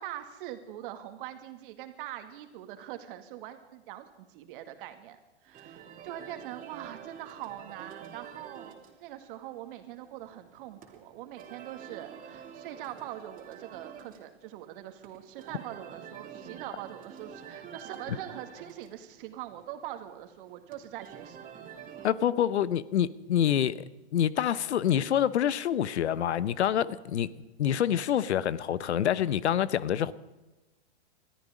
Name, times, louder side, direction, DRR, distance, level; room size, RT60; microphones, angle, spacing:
voice 1, 0.0-21.5, right 12 dB, 50° right, 8 dB, 2.2 m, -43 dB
sound 1, 5.5-22.1, right 8 dB, 25° right, 2.8 m, -48 dB
voice 2, 22.0-23.8 24.1-27.3 27.6-30.1, left 10 dB, 85° left, 19 dB, 0.9 m, -26 dB
21.0 x 13.5 x 5.1 m, 1.1 s
hypercardioid pair, 125°, 33 cm